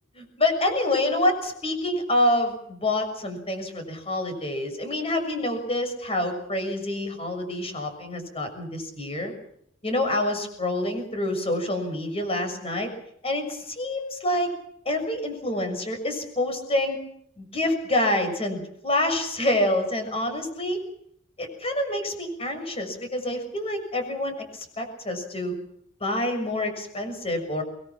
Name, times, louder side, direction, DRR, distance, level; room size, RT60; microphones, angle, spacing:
voice 1, 0.2-9.3 9.8-12.9 13.2-14.5 14.8-17.0 17.4-20.8 21.4-25.5 26.0-27.6, left 1 dB, 30° left, 6 dB, 6.5 m, -27 dB
26.5 x 21.0 x 6.0 m, 0.68 s
head